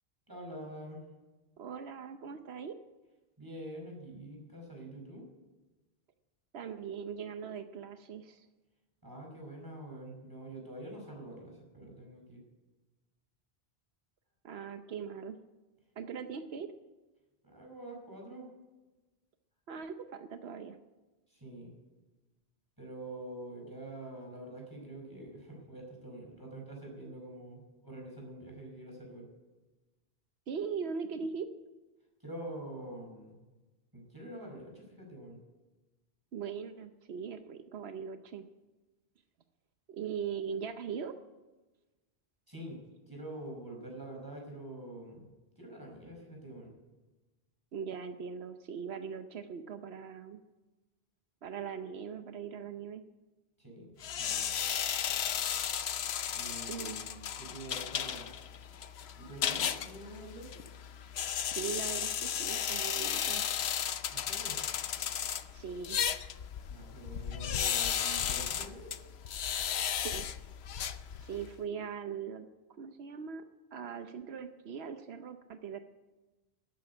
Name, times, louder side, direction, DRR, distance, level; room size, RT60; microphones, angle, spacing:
voice 1, 0.3-1.0 3.4-5.3 9.0-12.4 17.4-18.5 21.3-21.7 22.8-29.3 32.2-33.4 33.9-35.4 42.5-42.8 43.1-46.7 53.6-53.9 54.2-54.5 56.3-58.3 59.2-60.6 64.1-64.6 66.7-68.9, right 1 dB, 20° right, -1 dB, 5.3 m, -46 dB
voice 2, 1.6-2.8 6.5-8.5 14.4-15.4 16.0-16.7 19.7-20.8 30.5-31.5 36.3-38.4 39.9-41.2 47.7-50.4 51.4-53.0 56.6-57.0 61.5-63.4 65.5-66.0 70.0-70.3 71.2-72.5 72.8-73.4 73.7-75.8, right 6 dB, 85° right, 8 dB, 1.1 m, -40 dB
sound 1, 54.0-71.5, left 9 dB, 90° left, 1.0 m, -34 dB
13.0 x 10.0 x 9.8 m, 1.2 s
omnidirectional pair, 1.0 m